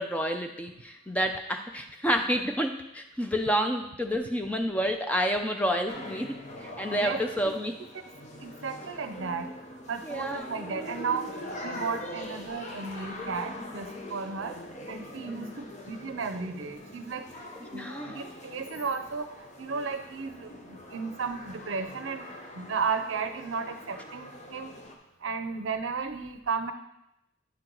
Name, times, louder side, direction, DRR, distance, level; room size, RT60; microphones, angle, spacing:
voice 1, 0.0-7.8 10.0-10.5 15.3-15.5 17.6-18.2, equal, 5° left, 5 dB, 0.5 m, -29 dB
sound 1, 5.9-25.0, left 1 dB, 35° left, 0.8 m, -43 dB
voice 2, 6.9-7.5 8.4-9.5 9.9-11.4 11.6-14.5 14.9-17.3 17.7-22.3 22.5-24.7 25.2-26.7, right 5 dB, 70° right, 8 dB, 0.6 m, -34 dB
9.6 x 4.6 x 3.9 m, 0.82 s
head